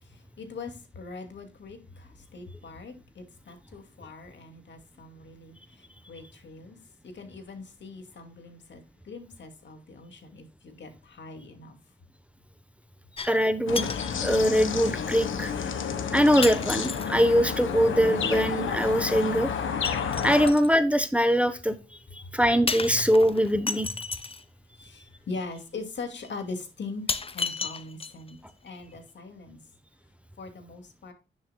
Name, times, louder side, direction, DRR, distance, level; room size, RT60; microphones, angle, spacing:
voice 1, 0.0-6.8 7.0-11.8 22.2-22.4 24.7-28.4 28.6-29.6 30.4-31.1, left 3 dB, 65° left, 2.3 m, -41 dB
sound 1, 13.2-13.5 13.7-14.2 15.1-15.2 16.4-17.3 19.8-20.7 22.7-24.4 25.6-25.7 26.2-26.3 27.1-28.3 28.7-28.8, left 4 dB, 30° left, 0.7 m, -33 dB
voice 2, 13.2-13.9 14.2-15.5 16.1-19.5 20.2-21.8 22.1-23.9, equal, 5° right, 0.9 m, -22 dB
sound 2, 13.7-20.5, left 6 dB, 85° left, 1.3 m, -30 dB
10.0 x 6.5 x 2.2 m
cardioid pair, 65°, 20 cm